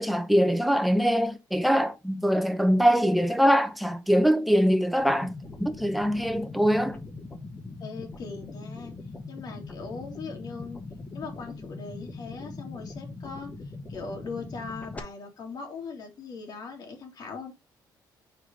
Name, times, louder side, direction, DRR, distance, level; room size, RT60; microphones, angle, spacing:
voice 1, 0.0-5.3 5.6-7.0, equal, ahead, 0.8 m, -23 dB
sound 1, 5.0-15.0, left 3 dB, 20° left, 1.2 m, -41 dB
voice 2, 7.8-9.0 9.3-10.8 11.1-13.5 13.9-17.5, left 4 dB, 55° left, 2.3 m, -40 dB
4.7 x 4.6 x 5.0 m
cardioid pair, 125°, 8 cm